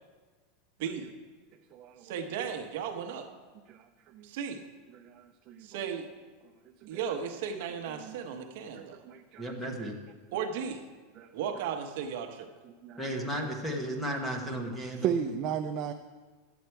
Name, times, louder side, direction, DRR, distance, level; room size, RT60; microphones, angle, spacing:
voice 1, 0.8-1.1 2.0-3.3 4.2-4.6 5.6-6.1 6.9-9.0 10.3-10.9 11.3-12.5, right 7 dB, 55° right, 5 dB, 1.0 m, -35 dB
voice 2, 1.7-2.0 3.7-4.3 4.9-5.7 6.8-7.0 8.0-8.2 8.8-9.8 11.2-11.3 12.8-13.4 14.5-14.6 14.9-15.9, right 8 dB, 30° right, 6 dB, 0.4 m, -36 dB
voice 3, 9.4-9.9 13.0-15.1, equal, 5° left, 2 dB, 1.0 m, -34 dB
11.5 x 8.2 x 4.5 m, 1.3 s
supercardioid pair, 175°, 0 cm